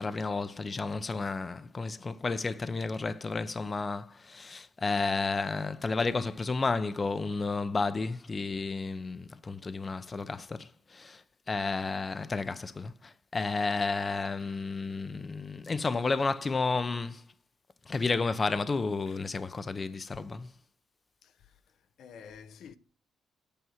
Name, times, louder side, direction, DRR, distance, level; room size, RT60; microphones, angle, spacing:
voice 1, 0.0-17.2 17.9-20.5, left 3 dB, 30° left, 0.7 m, -32 dB
voice 2, 21.2-21.5 22.0-22.8, left 7 dB, 70° left, 0.7 m, -49 dB
8.5 x 6.1 x 7.4 m
cardioid pair, 90°, 0 cm